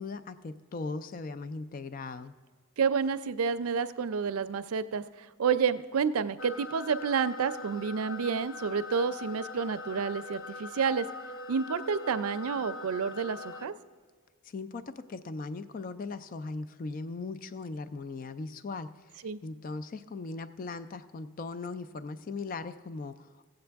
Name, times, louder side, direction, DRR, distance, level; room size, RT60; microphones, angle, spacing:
voice 1, 0.0-2.3 14.4-23.5, left 3 dB, 40° left, 12 dB, 0.3 m, -39 dB
voice 2, 2.8-11.1 11.5-13.7 19.2-19.4, right 6 dB, 90° right, 13 dB, 0.5 m, -29 dB
sound 1, 6.4-13.7, left 3 dB, 65° left, 0.7 m, -42 dB
17.0 x 7.8 x 3.4 m, 1.5 s
head